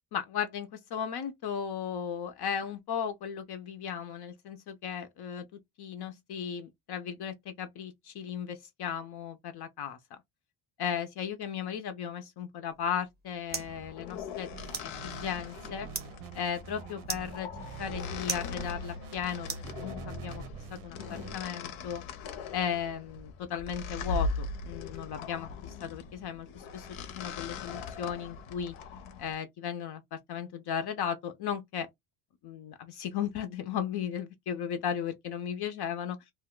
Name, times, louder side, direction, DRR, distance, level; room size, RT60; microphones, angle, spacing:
voice 1, 0.1-5.5 5.8-10.0 10.8-14.5 14.8-15.9 16.3-17.5 17.8-20.4 20.7-22.0 22.5-28.7 29.2-31.9 32.4-36.2, left 8 dB, 55° left, 0.6 m, -36 dB
sound 1, 12.7-20.3, right 5 dB, 20° right, 0.5 m, -43 dB
sound 2, 13.5-29.4, left 4 dB, 85° left, 0.8 m, -40 dB
sound 3, 14.5-21.3, right 3 dB, 90° right, 0.8 m, -44 dB
2.6 x 2.2 x 3.7 m
cardioid pair, 145°, 48 cm